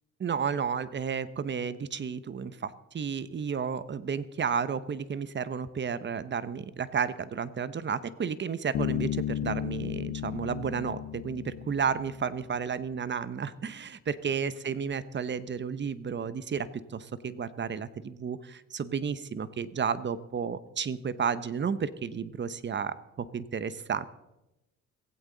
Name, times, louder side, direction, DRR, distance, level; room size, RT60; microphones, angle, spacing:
voice 1, 0.2-24.1, right 6 dB, 40° right, 15 dB, 0.8 m, -32 dB
Bass guitar, 8.7-12.4, left 11 dB, 60° left, 0.6 m, -34 dB
16.5 x 15.5 x 3.9 m, 0.93 s
cardioid pair, 90°, 30 cm